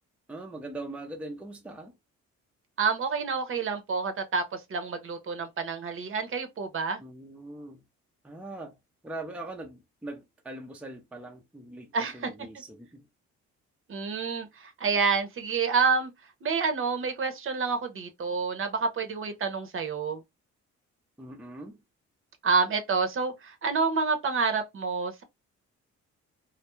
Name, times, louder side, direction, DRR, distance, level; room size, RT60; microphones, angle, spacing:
voice 1, 0.3-1.9 7.0-7.8 8.2-8.7 9.0-13.0 21.2-21.8, right 2 dB, 5° right, 0.5 m, -41 dB
voice 2, 2.8-7.0 11.9-12.3 13.9-16.1 16.4-20.2 22.4-25.2, right 5 dB, 45° right, 0.7 m, -28 dB
2.2 x 2.1 x 3.0 m
cardioid pair, 90°, 30 cm